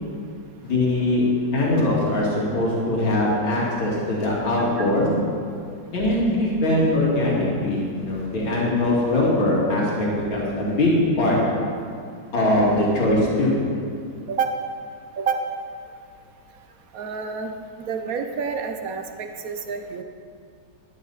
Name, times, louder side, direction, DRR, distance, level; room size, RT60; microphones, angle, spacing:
voice 1, 0.6-1.2 1.5-5.1 5.9-11.4 12.3-13.6, left 1 dB, 85° left, -5 dB, 3.0 m, -21 dB
voice 2, 16.9-17.5 17.9-20.0, right 6 dB, 60° right, 6 dB, 1.0 m, -28 dB
13.5 x 11.0 x 4.1 m, 2.3 s
omnidirectional pair, 2.1 m